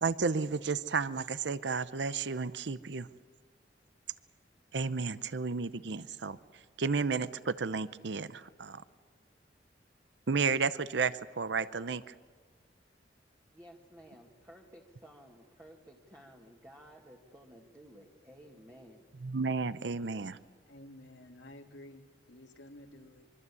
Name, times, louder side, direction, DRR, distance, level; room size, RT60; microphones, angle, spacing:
voice 1, 0.0-3.1 4.7-8.8 10.3-12.1 19.1-20.4, right 4 dB, 75° right, 15 dB, 0.7 m, -32 dB
voice 2, 13.5-19.1, equal, 15° right, -2 dB, 1.9 m, -55 dB
voice 3, 20.7-23.3, left 1 dB, 80° left, 4 dB, 1.9 m, -52 dB
24.5 x 24.5 x 8.4 m, 1.5 s
head